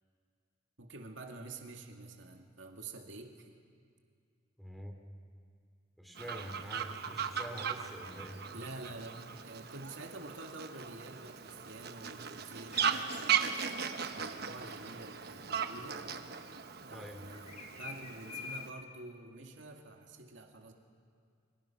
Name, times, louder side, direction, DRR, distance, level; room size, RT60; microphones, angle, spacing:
voice 1, 0.8-3.3 8.5-13.6 14.1-16.0 16.8-20.7, right 2 dB, 80° right, 3 dB, 2.2 m, -48 dB
voice 2, 4.6-4.9 6.0-8.4 16.9-17.2, right 1 dB, ahead, 2 dB, 2.9 m, -46 dB
Fowl, 6.2-18.7, right 7 dB, 55° right, 1.1 m, -38 dB
sound 1, 12.7-13.7 17.3-18.8, left 5 dB, 40° left, 2.3 m, -47 dB
29.5 x 24.0 x 5.9 m, 2.2 s
head